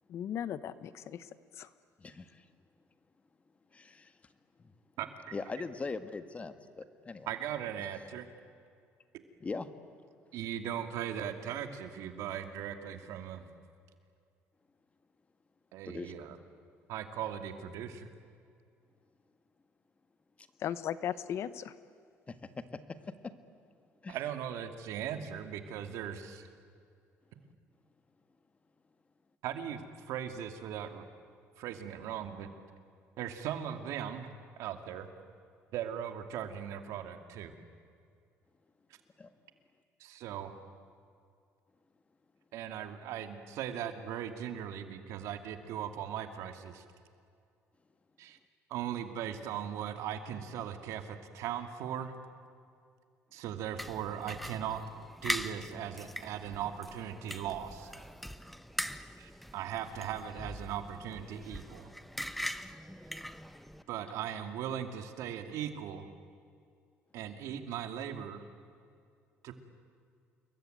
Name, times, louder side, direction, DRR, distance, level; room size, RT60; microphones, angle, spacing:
voice 1, 0.1-1.7 20.6-21.7, left 9 dB, 60° left, 15 dB, 1.2 m, -37 dB
voice 2, 2.0-2.5 3.7-4.1 4.6-4.7 5.3-7.3 9.4-9.7 15.9-16.1 22.3-22.4 22.7-23.1 24.0-24.2 39.2-39.3, left 4 dB, 25° left, 10 dB, 1.7 m, -41 dB
voice 3, 5.0-5.3 7.3-8.3 10.3-13.5 15.7-16.4 16.9-18.1 24.1-26.5 29.4-31.0 31.6-32.5 33.2-34.3 34.6-35.1 35.7-37.5 40.0-40.6 42.5-46.8 48.2-48.4 48.7-52.1 53.3-54.8 55.2-57.9 59.2-61.9 63.9-66.1 67.1-68.4 69.4-69.6, right 9 dB, 80° right, 7 dB, 2.4 m, -39 dB
sound 1, 53.8-63.8, equal, ahead, 1.0 m, -41 dB
28.5 x 22.5 x 9.3 m, 2.3 s
cardioid pair, 105°, 5 cm